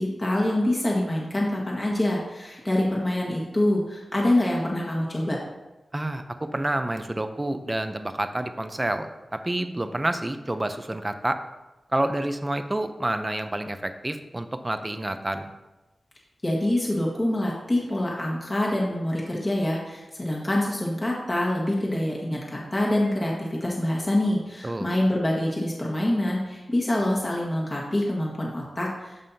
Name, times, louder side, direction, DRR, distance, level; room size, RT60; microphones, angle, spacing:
voice 1, 0.0-5.4 16.4-29.2, left 1 dB, 25° left, -4 dB, 1.6 m, -25 dB
voice 2, 5.9-11.4 11.9-15.5 24.6-24.9, right 1 dB, 20° right, 8 dB, 0.6 m, -28 dB
13.0 x 5.4 x 2.8 m, 1.0 s
wide cardioid pair, 105°, 0 cm